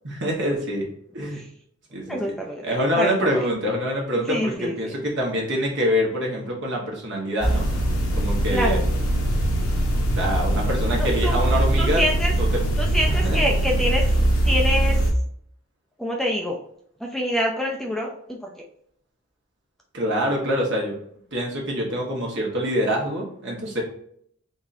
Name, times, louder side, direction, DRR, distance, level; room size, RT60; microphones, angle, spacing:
voice 1, 0.0-0.9 1.1-1.4 1.9-2.2 2.6-7.7 8.2-8.8 10.2-12.0 12.4-12.6 13.2-13.4 19.9-20.9 21.3-23.8, equal, 55° right, -2 dB, 1.3 m, -25 dB
voice 2, 2.1-2.6 3.0-3.5 4.3-4.9 8.5-8.9 10.9-11.5 11.8-12.3 12.8-14.2 14.4-15.0 16.0-16.6 17.0-18.5, equal, ahead, 0 dB, 0.4 m, -26 dB
sound 1, 7.4-15.1, right 1 dB, 80° left, 1.0 m, -22 dB
3.9 x 3.5 x 2.6 m, 0.67 s
head